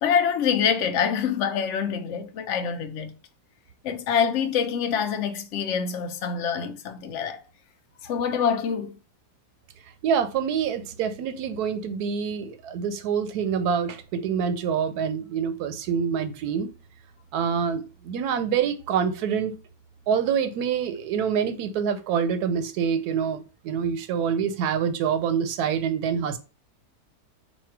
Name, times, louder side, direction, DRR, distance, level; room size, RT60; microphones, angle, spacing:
voice 1, 0.0-3.1 3.8-7.4 8.0-9.0, left 7 dB, 65° left, 0.8 m, -25 dB
voice 2, 10.0-16.7 17.3-19.5 20.1-26.4, right 7 dB, 75° right, 1.1 m, -26 dB
4.2 x 2.3 x 4.5 m
omnidirectional pair, 1.8 m